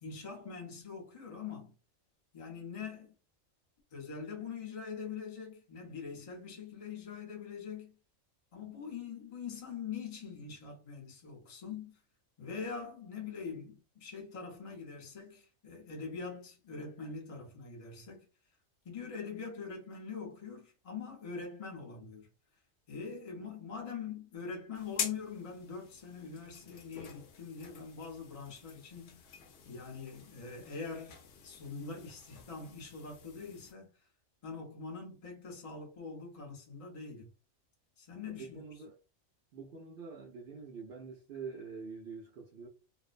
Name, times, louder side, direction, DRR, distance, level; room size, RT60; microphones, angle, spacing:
voice 1, 0.0-1.7 2.3-3.1 3.9-8.0 8.5-12.0 12.4-18.3 18.8-22.3 22.9-29.3 29.6-34.1 34.4-37.3 38.0-38.6, left 5 dB, 35° left, 0.7 m, -43 dB
sound 1, 24.7-33.7, left 7 dB, 70° left, 0.9 m, -46 dB
voice 2, 38.3-39.0 39.5-42.7, right 5 dB, 65° right, 0.5 m, -45 dB
2.5 x 2.0 x 2.4 m
omnidirectional pair, 1.4 m